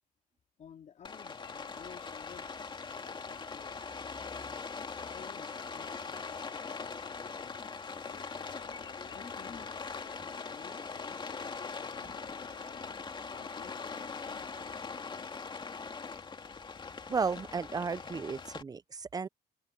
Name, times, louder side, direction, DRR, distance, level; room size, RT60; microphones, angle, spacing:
voice 1, 0.6-4.5 5.1-8.2 9.1-9.9 10.5-15.4, left 8 dB, 45° left, 2.8 m, -55 dB
Rain, 1.0-18.6, left 5 dB, 30° left, 2.5 m, -41 dB
sound 1, 1.4-4.4 4.8-7.4 8.0-10.6 11.3-15.5, left 15 dB, 85° left, 1.5 m, -57 dB
voice 2, 17.1-19.3, right 5 dB, 20° right, 0.6 m, -34 dB
open air
cardioid pair, 110°, 17 cm